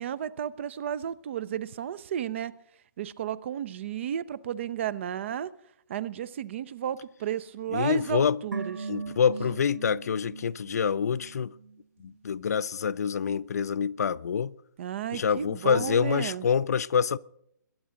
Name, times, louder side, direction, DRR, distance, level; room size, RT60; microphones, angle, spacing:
voice 1, 0.0-2.5 3.0-5.5 5.9-8.9 14.8-16.5, right 10 dB, 40° right, 0.6 m, -33 dB
voice 2, 7.7-8.4 8.9-11.5 12.0-14.5 15.1-17.2, left 7 dB, 55° left, 0.4 m, -26 dB
sound 1, 8.5-11.8 12.1-12.2, right 4 dB, 90° right, 0.4 m, -39 dB
22.5 x 10.0 x 3.8 m
figure-of-eight pair, 140°, 10 cm